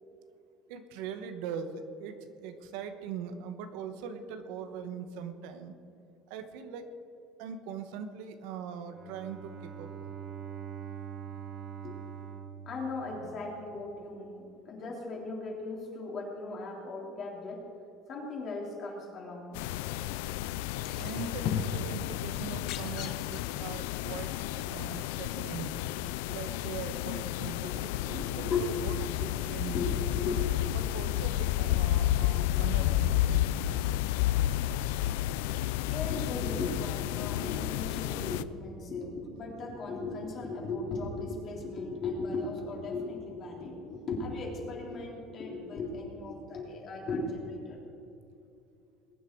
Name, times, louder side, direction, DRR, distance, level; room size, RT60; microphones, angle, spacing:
voice 1, 0.7-5.7 6.3-6.9 7.4-10.1 21.0-25.8 26.3-30.1 30.7-34.0 38.1-38.3 47.7-47.8, right 7 dB, 80° right, 8 dB, 1.1 m, -41 dB
Bowed string instrument, 8.8-13.8, right 8 dB, 50° right, 1.5 m, -44 dB
voice 2, 11.8-12.1 12.6-17.6 18.1-19.6 27.6-28.9 29.6-30.5 32.5-32.6 35.9-47.8, left 3 dB, 40° left, -2 dB, 3.4 m, -37 dB
sound 1, 19.5-38.4, left 14 dB, 90° left, 0.4 m, -31 dB
sound 2, 20.8-21.9 22.4-23.7 24.8-24.9, left 7 dB, 60° left, 1.1 m, -36 dB
21.0 x 9.7 x 4.6 m, 2.6 s
cardioid pair, 145°, 0 cm